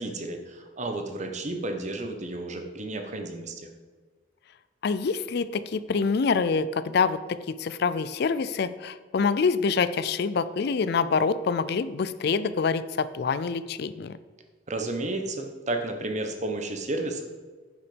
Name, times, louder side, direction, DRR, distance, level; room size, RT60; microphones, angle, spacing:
voice 1, 0.0-3.7 14.7-17.2, right 2 dB, 40° right, 5 dB, 1.2 m, -32 dB
voice 2, 4.8-14.2, left 5 dB, 60° left, 15 dB, 0.4 m, -26 dB
10.5 x 5.8 x 5.2 m, 1.4 s
head